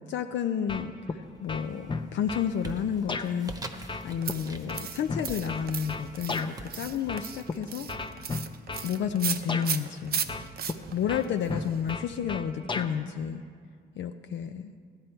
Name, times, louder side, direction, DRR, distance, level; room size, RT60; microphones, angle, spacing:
voice 1, 0.1-0.9 1.4-3.5 4.0-7.9 8.8-10.2 10.9-13.4 14.0-14.7, left 8 dB, 70° left, 6 dB, 0.6 m, -31 dB
sound 1, 0.7-1.2 1.5-2.5 3.1-3.3 3.9-6.5 7.1-7.5 7.9-8.9 9.5-9.7 10.3-10.8 11.1-12.9, left 4 dB, 25° left, 0.7 m, -34 dB
sound 2, 1.3-1.8 2.2-8.8, right 2 dB, 20° right, 1.0 m, -45 dB
sound 3, 4.2-12.0, right 7 dB, 50° right, 0.7 m, -36 dB
14.5 x 10.5 x 4.5 m, 2.1 s
cardioid pair, 90°, 20 cm